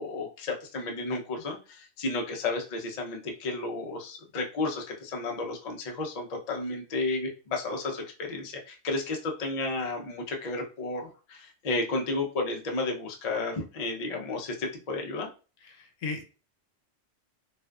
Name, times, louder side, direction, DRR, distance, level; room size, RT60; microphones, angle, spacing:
voice 1, 0.0-15.3, left 3 dB, 50° left, 1 dB, 0.5 m, -32 dB
voice 2, 15.6-16.2, left 4 dB, 80° left, 4 dB, 1.0 m, -36 dB
2.5 x 2.3 x 2.2 m, 0.34 s
omnidirectional pair, 1.3 m